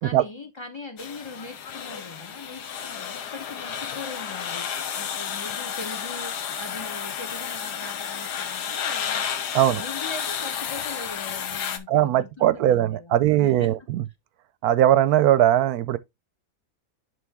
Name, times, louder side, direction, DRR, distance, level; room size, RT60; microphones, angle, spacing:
voice 1, 0.0-9.2 9.7-13.9, left 3 dB, 45° left, 0.3 m, -41 dB
sound 1, 1.0-11.8, left 8 dB, 80° left, 1.6 m, -32 dB
voice 2, 11.9-14.0 14.6-16.0, right 12 dB, 70° right, 1.0 m, -20 dB
11.0 x 3.6 x 3.5 m
omnidirectional pair, 1.8 m